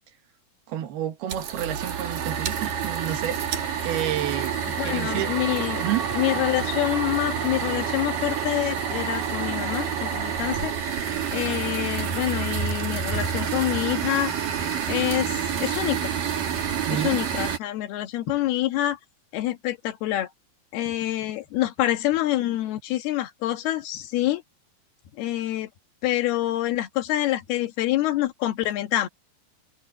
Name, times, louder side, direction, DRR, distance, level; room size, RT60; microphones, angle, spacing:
voice 1, 0.7-5.3 5.8-6.1 16.9-17.2, right 11 dB, 80° right, 3.5 m, -30 dB
sound 1, 1.3-17.6, right 7 dB, 60° right, 3.8 m, -28 dB
voice 2, 4.8-5.8 6.1-10.7 11.3-14.3 14.9-15.3 15.6-16.1 16.9-19.0 19.3-20.3 20.7-24.4 25.2-25.7 26.0-29.1, left 14 dB, 85° left, 3.4 m, -26 dB
sound 2, 5.1-10.6, right 5 dB, 45° right, 4.7 m, -37 dB
omnidirectional pair, 4.4 m